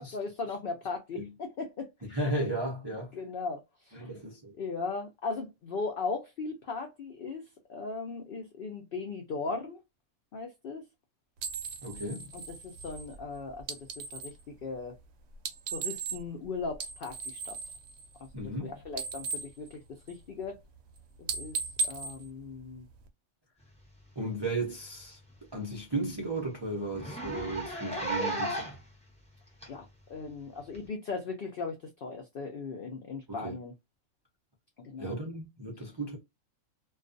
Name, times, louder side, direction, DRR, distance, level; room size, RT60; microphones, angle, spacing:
voice 1, 0.0-2.2 3.1-4.2 4.6-9.8 10.3-10.8 12.3-14.9 15.7-17.6 18.4-20.6 21.4-21.6 21.8-22.8 29.7-33.7 34.8-35.2, left 4 dB, 70° left, 0.5 m, -38 dB
voice 2, 2.1-3.1 3.9-4.5 11.8-12.3 18.3-18.7 24.2-25.2 25.5-28.7 33.3-33.6 35.0-36.2, right 1 dB, 35° right, 0.4 m, -35 dB
sound 1, 11.4-14.4 15.3-16.4 16.7-18.6 18.8-20.4 20.8-21.0 21.2-23.1, right 4 dB, 65° right, 0.8 m, -37 dB
Zipper (clothing), 24.3-24.5 24.8-24.9 25.3-25.4 25.8-25.9 26.1-26.3 26.9-28.9 29.6-29.7 30.7-30.8, right 2 dB, 5° left, 0.6 m, -34 dB
2.3 x 2.3 x 2.5 m
omnidirectional pair, 1.5 m